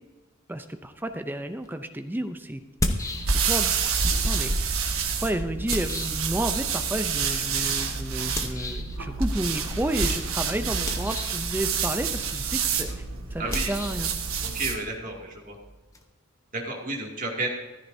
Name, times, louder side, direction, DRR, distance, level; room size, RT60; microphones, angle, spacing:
voice 1, 0.5-3.0 3.3-4.8 5.2-13.0 13.3-14.1, right 1 dB, 10° right, 8 dB, 0.5 m, -31 dB
sound 1, 1.6-1.7 2.6-3.7 4.0-6.8 8.3-9.0 10.7-11.5 13.5-16.0, left 1 dB, 15° left, 0.9 m, -33 dB
sound 2, 2.9-14.9, right 6 dB, 65° right, 1.4 m, -28 dB
voice 2, 13.4-13.7 14.4-15.6 16.6-17.5, right 2 dB, 40° right, -1 dB, 2.4 m, -32 dB
15.0 x 13.5 x 2.7 m, 1.2 s
head